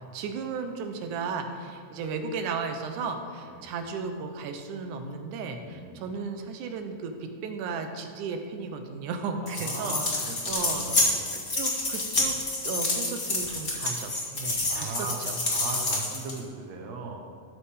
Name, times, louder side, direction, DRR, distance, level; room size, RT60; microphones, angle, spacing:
voice 1, 0.1-11.1 11.3-12.4 12.6-15.4, right 5 dB, 80° right, 6 dB, 2.2 m, -35 dB
voice 2, 5.6-6.0 9.4-11.2 14.7-15.2 15.5-17.3, right 4 dB, 65° right, 1 dB, 2.1 m, -38 dB
sound 1, 9.4-16.4, left 2 dB, 45° left, 0.6 m, -28 dB
12.5 x 6.6 x 3.6 m, 2.4 s
omnidirectional pair, 3.5 m